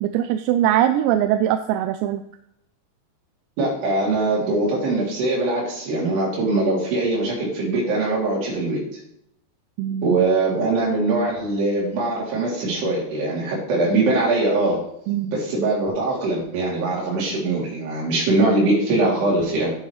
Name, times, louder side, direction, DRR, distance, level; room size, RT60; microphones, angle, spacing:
voice 1, 0.0-2.2 9.8-10.3 15.1-15.3, right 11 dB, 90° right, 8 dB, 2.8 m, -21 dB
voice 2, 3.6-8.8 10.0-14.8 15.3-19.7, right 2 dB, 70° right, -4 dB, 5.2 m, -22 dB
9.7 x 9.6 x 3.2 m, 0.78 s
omnidirectional pair, 5.0 m